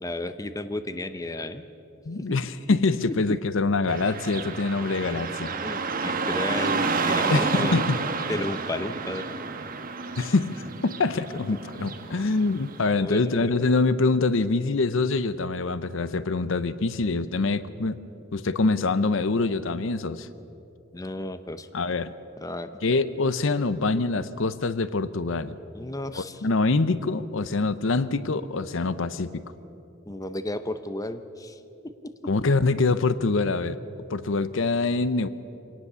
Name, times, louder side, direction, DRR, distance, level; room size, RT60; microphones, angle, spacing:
voice 1, 0.0-1.6 2.7-2.8 5.6-7.8 8.3-9.3 12.2-12.3 13.0-13.4 20.9-21.7 22.4-22.7 25.7-26.4 30.1-32.3, left 1 dB, 15° left, 11 dB, 0.7 m, -33 dB
voice 2, 2.1-5.5 7.3-8.0 10.2-18.0 18.3-20.3 21.7-22.1 22.8-25.5 26.1-29.4 32.3-33.8 34.1-35.3, left 3 dB, 70° left, 14 dB, 0.7 m, -25 dB
Car passing by / Traffic noise roadway noise, 3.9-12.9, right 4 dB, 45° right, 1.4 m, -30 dB
24.5 x 18.0 x 6.9 m, 2.8 s
head